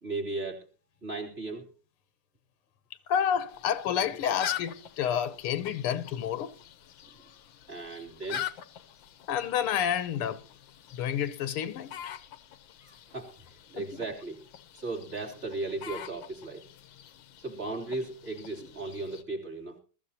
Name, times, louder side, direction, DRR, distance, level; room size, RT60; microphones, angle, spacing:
voice 1, 0.0-0.6 1.0-1.7 7.7-8.5 12.8-13.3 13.7-14.5 14.7-16.6 17.4-19.8, right 3 dB, 25° right, 3.1 m, -36 dB
voice 2, 3.1-6.5 9.3-10.4 10.9-12.1 13.8-13.9, left 9 dB, 85° left, 1.9 m, -29 dB
sound 1, 3.5-19.2, left 10 dB, 70° left, 1.5 m, -44 dB
21.5 x 14.0 x 2.8 m
omnidirectional pair, 2.4 m